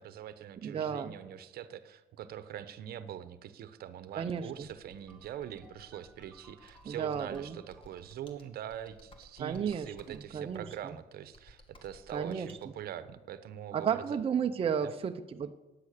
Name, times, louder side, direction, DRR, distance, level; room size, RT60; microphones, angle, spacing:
voice 1, 0.0-14.0 14.8-14.9, right 10 dB, 65° right, 13 dB, 1.0 m, -43 dB
voice 2, 0.6-1.1 4.1-4.7 6.8-7.6 9.4-10.9 12.1-12.5 13.7-15.6, right 7 dB, 35° right, 6 dB, 0.7 m, -33 dB
Computer keyboard, 4.5-12.7, left 1 dB, 30° left, 2.1 m, -59 dB
sound 1, 5.0-8.2, equal, ahead, 3.3 m, -61 dB
15.0 x 9.8 x 6.6 m, 1.1 s
cardioid pair, 110°, 17 cm